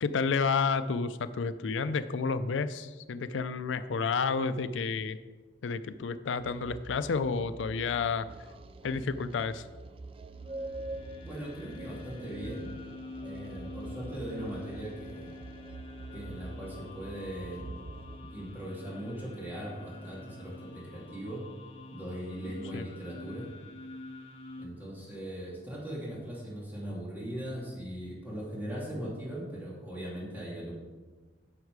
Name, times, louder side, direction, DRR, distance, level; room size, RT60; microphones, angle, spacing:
voice 1, 0.0-5.2 5.6-8.3 8.8-9.6 22.7-22.8, left 5 dB, 90° left, 13 dB, 0.4 m, -30 dB
sound 1, 6.4-18.2, right 2 dB, 30° right, 0.4 m, -45 dB
sound 2, 10.3-24.6, left 2 dB, 30° left, 1.0 m, -47 dB
voice 2, 11.2-12.7 13.2-15.4 16.1-17.8 18.2-21.4 21.9-23.5 24.6-30.7, right 1 dB, 10° right, -5 dB, 2.6 m, -39 dB
9.7 x 6.5 x 4.7 m, 1.3 s
head